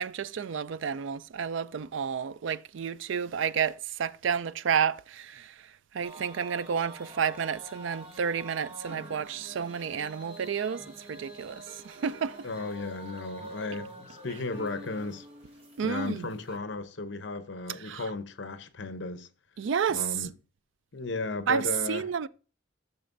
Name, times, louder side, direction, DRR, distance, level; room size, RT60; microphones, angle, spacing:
voice 1, 0.0-5.5 5.9-12.5 14.3-14.4 15.8-16.3 17.7-18.1 19.6-20.1 21.5-22.3, right 7 dB, 70° right, 0.4 m, -31 dB
sound 1, 6.0-16.6, right 1 dB, 30° right, 1.8 m, -47 dB
voice 2, 12.4-15.3 15.8-19.3 19.9-20.3 20.9-22.1, left 3 dB, 65° left, 0.8 m, -35 dB
14.5 x 6.8 x 2.6 m
head